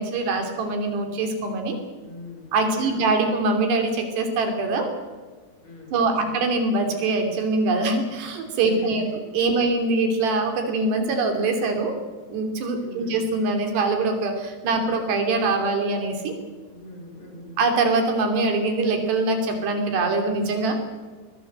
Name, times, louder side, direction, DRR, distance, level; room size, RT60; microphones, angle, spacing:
voice 1, 0.0-1.8 2.5-4.9 5.9-9.0 9.3-11.9 12.3-16.3 17.6-20.8, right 3 dB, 75° right, 5 dB, 5.1 m, -23 dB
voice 2, 2.0-3.0 5.6-6.4 8.7-9.2 9.5-9.6 12.8-13.2 16.7-17.6, left 1 dB, 40° left, 2 dB, 6.2 m, -41 dB
22.5 x 19.0 x 8.0 m, 1.4 s
omnidirectional pair, 4.8 m